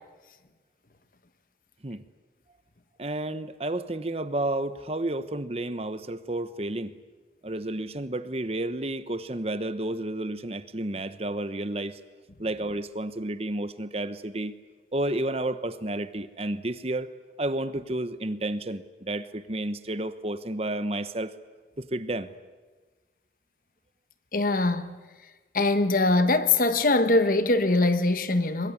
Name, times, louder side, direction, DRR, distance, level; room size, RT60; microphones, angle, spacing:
voice 1, 3.0-6.9 7.4-12.0 12.4-14.5 14.9-17.1 17.4-21.3 21.8-22.3, right 1 dB, 35° right, 1.0 m, -31 dB
voice 2, 24.3-25.0 25.5-28.7, left 2 dB, 50° left, 1.4 m, -22 dB
22.5 x 22.5 x 9.7 m
head